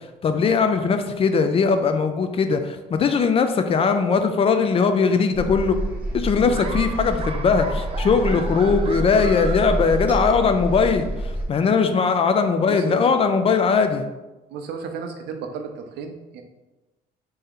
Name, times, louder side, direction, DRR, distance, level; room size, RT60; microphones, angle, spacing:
voice 1, 0.2-5.8 6.1-14.1, left 5 dB, 35° left, 7 dB, 0.3 m, -20 dB
sound 1, 5.3-11.4, right 1 dB, 10° right, 0.9 m, -28 dB
Laughter, 6.5-10.6, right 4 dB, 35° right, 0.4 m, -36 dB
voice 2, 12.7-13.1 14.5-16.4, right 5 dB, 80° right, 5 dB, 0.6 m, -34 dB
3.4 x 2.8 x 3.6 m, 1.1 s
cardioid pair, 110°, 17 cm